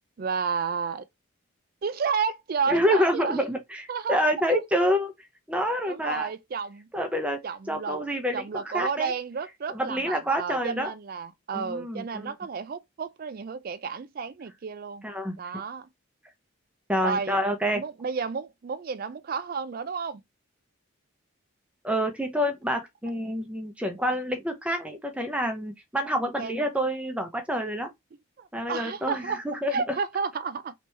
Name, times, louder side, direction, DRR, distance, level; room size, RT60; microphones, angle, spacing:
voice 1, 0.2-1.0 1.8-3.4 3.9-4.2 4.5-4.6 5.9-6.9 7.4-8.0 8.3-15.1 15.4-15.9 17.0-17.3 17.7-20.2 26.4-26.6 28.4-29.4 29.7-30.7, right 5 dB, 45° right, 0.4 m, -31 dB
voice 2, 2.7-5.1 5.5-6.3 6.9-7.4 7.7-9.1 9.7-10.9 11.5-12.3 15.0-15.6 16.9-17.8 21.8-27.9 28.5-30.0, equal, 5° right, 0.6 m, -27 dB
3.3 x 3.0 x 2.8 m
head